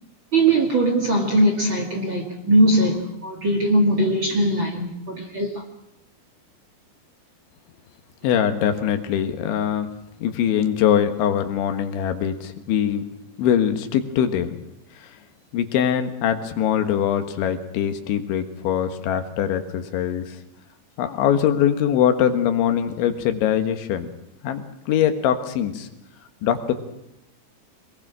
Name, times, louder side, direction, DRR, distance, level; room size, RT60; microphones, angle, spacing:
voice 1, 0.3-5.6, right 1 dB, 35° right, 2.2 m, -20 dB
voice 2, 8.2-9.9 10.2-13.0 13.4-14.6 15.5-20.2 21.0-24.1 24.4-25.9 26.4-26.7, left 9 dB, 85° left, 3.9 m, -22 dB
25.5 x 20.5 x 6.2 m
omnidirectional pair, 5.2 m